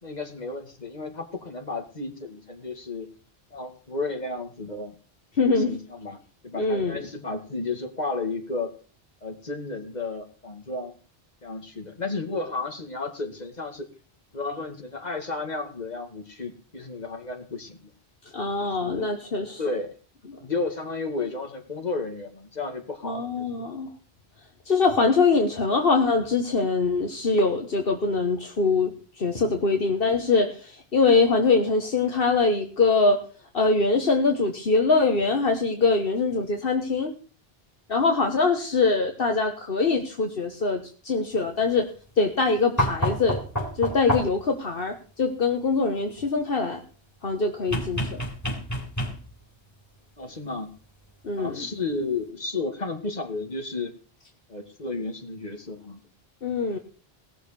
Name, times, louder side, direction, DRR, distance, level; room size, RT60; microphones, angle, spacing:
voice 1, 0.0-3.1 3.5-5.0 5.4-8.7 9.2-10.9 11.4-13.9 14.3-17.9 18.6-19.1 19.6-19.9 20.4-23.7 50.2-50.7 51.4-53.9 54.5-56.0, left 3 dB, 45° left, 5 dB, 2.3 m, -33 dB
voice 2, 5.4-5.7 6.5-7.0 18.3-19.6 23.0-23.9 24.6-28.9 29.2-33.2 33.5-37.1 37.9-41.9 42.2-43.4 43.8-46.8 47.2-48.2 51.2-51.5 56.4-56.8, left 4 dB, 65° left, 3 dB, 1.6 m, -23 dB
sound 1, 42.8-44.5 47.7-49.5 51.0-51.1, equal, 15° left, 3.6 m, -28 dB
18.0 x 6.6 x 6.7 m, 0.40 s
omnidirectional pair, 1.0 m